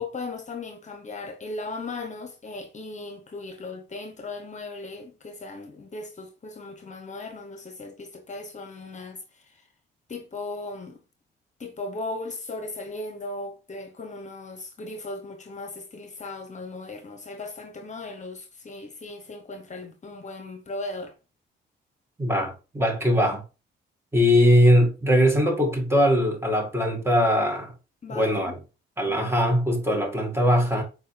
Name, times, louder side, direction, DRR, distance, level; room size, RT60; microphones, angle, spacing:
voice 1, 0.0-9.7 10.1-11.0 11.6-21.1 28.0-28.5 29.1-29.2, left 2 dB, 35° left, 1.2 m, -37 dB
voice 2, 22.2-23.4 24.1-27.7 28.1-28.5 29.0-30.8, equal, 10° right, 2.3 m, -21 dB
7.4 x 4.7 x 3.4 m
cardioid pair, 90°, 20 cm